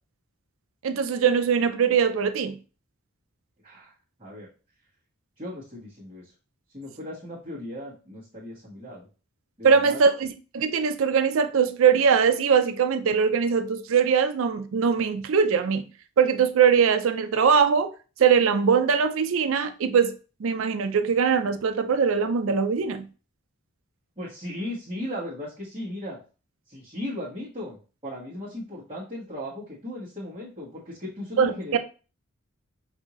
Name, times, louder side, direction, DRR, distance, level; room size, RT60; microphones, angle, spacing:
voice 1, 0.8-2.6 9.6-15.9 16.2-17.9 18.2-23.1 31.4-31.8, right 6 dB, 65° right, 0.4 m, -22 dB
voice 2, 3.6-4.5 5.4-6.3 6.7-9.1 9.6-10.0 24.2-26.2 26.7-27.8 28.0-31.8, left 1 dB, 25° right, 1.3 m, -37 dB
5.4 x 2.6 x 3.0 m
head